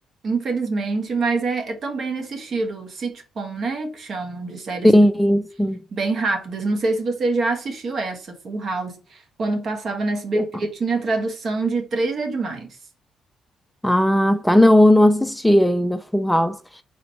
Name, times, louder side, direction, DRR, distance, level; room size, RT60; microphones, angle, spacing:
voice 1, 0.2-5.0 5.9-12.7, right 3 dB, 50° right, 1.2 m, -25 dB
voice 2, 4.8-5.8 10.4-10.5 13.8-16.8, left 1 dB, 5° left, 0.3 m, -16 dB
4.1 x 2.8 x 4.2 m
cardioid pair, 90°, 0 cm